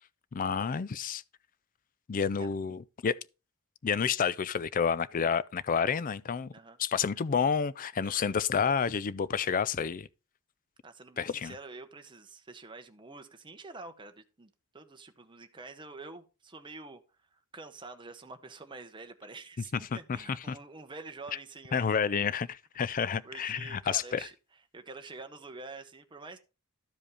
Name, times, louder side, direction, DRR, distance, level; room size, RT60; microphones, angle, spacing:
voice 1, 0.3-1.2 2.1-3.2 3.8-6.5 6.8-10.1 11.2-11.5 19.9-20.6 21.7-24.3, left 6 dB, 40° left, 0.4 m, -30 dB
voice 2, 8.0-8.3 10.8-17.0 17.3-21.9 22.9-24.3 24.7-26.4, right 3 dB, 20° right, 0.9 m, -47 dB
12.5 x 5.1 x 4.9 m
head